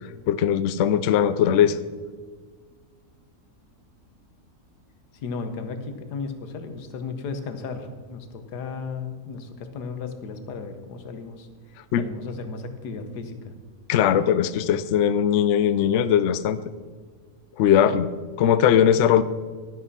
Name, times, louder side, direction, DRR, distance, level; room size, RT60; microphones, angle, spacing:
voice 1, 0.3-1.8 11.9-12.0 13.9-16.6 17.6-18.1 18.4-19.2, left 9 dB, 65° left, 14 dB, 0.7 m, -20 dB
voice 2, 5.2-11.5 12.0-13.4, left 4 dB, 90° left, 8 dB, 1.6 m, -34 dB
11.5 x 11.0 x 4.1 m, 1.5 s
omnidirectional pair, 1.7 m